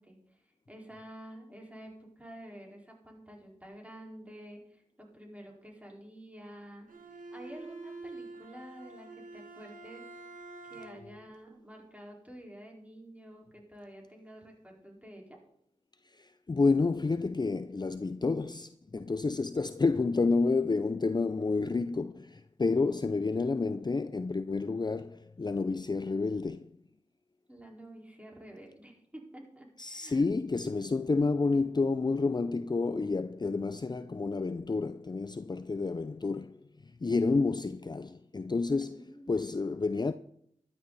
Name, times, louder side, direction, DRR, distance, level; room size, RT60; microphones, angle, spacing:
voice 1, 0.0-6.9 7.3-10.2 10.6-15.4 27.5-30.3 38.8-39.6, right 1 dB, 10° right, 4.7 m, -49 dB
Bowed string instrument, 6.9-11.2, right 3 dB, 85° right, 1.9 m, -47 dB
voice 2, 16.0-26.8 29.8-40.1, left 3 dB, 30° left, 0.5 m, -30 dB
13.0 x 11.0 x 4.1 m
cardioid pair, 45°, 14 cm